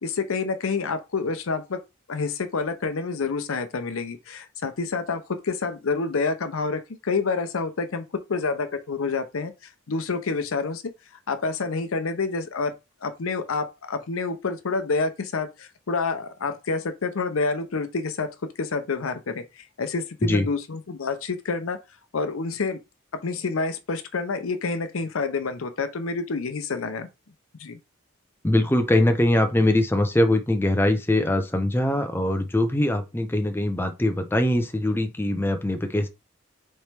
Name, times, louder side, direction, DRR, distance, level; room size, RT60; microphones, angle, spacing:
voice 1, 0.0-1.8 2.1-10.8 11.3-12.7 13.0-18.3 18.6-21.8 22.1-22.8 23.2-27.1 27.6-27.8, left 4 dB, 85° left, 0.7 m, -28 dB
voice 2, 28.4-36.1, left 1 dB, 10° left, 0.5 m, -22 dB
4.3 x 3.1 x 3.3 m
head